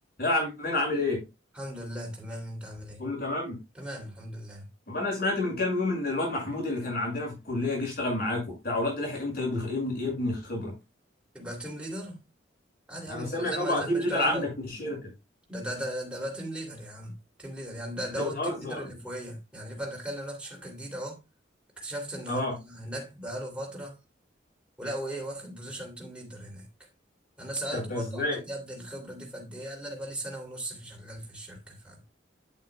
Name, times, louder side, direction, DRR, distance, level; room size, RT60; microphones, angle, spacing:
voice 1, 0.2-1.2 3.0-3.6 4.9-10.7 13.1-15.1 18.2-18.8 22.3-22.6 27.7-28.4, left 2 dB, 50° left, 5.7 m, -29 dB
voice 2, 1.5-3.1 3.7-4.6 11.3-12.2 12.9-14.4 15.5-21.2 21.8-24.0 24.8-26.7 27.4-32.0, right 1 dB, 5° right, 2.8 m, -37 dB
9.5 x 8.5 x 2.3 m
head